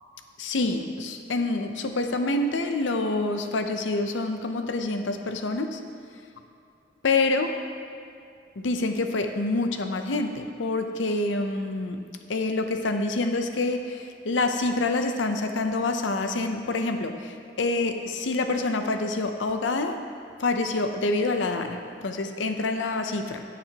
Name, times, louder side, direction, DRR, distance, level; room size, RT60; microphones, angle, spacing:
voice 1, 0.4-5.8 7.0-7.6 8.6-12.0 12.3-20.0 20.4-23.4, left 2 dB, 85° left, 6 dB, 0.7 m, -27 dB
15.0 x 7.2 x 2.9 m, 2.4 s
head